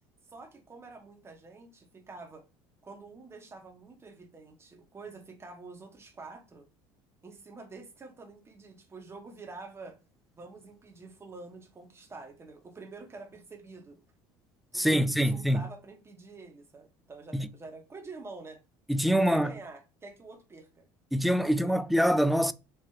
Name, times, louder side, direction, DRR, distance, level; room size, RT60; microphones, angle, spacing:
voice 1, 0.3-2.4 2.8-6.7 7.2-10.0 10.3-14.0 14.7-18.6 19.1-20.9 21.4-21.7, right 3 dB, 25° right, 1.4 m, -47 dB
voice 2, 14.7-15.7 17.3-17.5 18.9-19.5 21.1-22.5, equal, ahead, 0.3 m, -25 dB
4.8 x 2.9 x 2.9 m
supercardioid pair, 100°, 11 cm